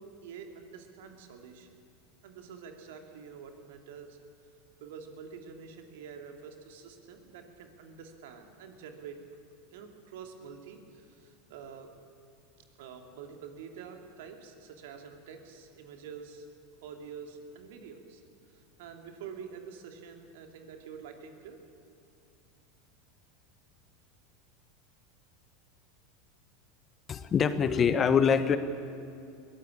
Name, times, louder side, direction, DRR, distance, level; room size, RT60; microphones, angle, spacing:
voice 1, 0.0-1.7 2.2-4.5 4.8-9.2 9.7-11.9 12.8-16.5 16.8-18.2 18.5-21.6, right 6 dB, 65° right, 5 dB, 2.7 m, -47 dB
voice 2, 27.1-28.6, left 7 dB, 30° left, 12 dB, 1.3 m, -24 dB
22.0 x 17.5 x 8.5 m, 2.6 s
hypercardioid pair, 85°, 0 cm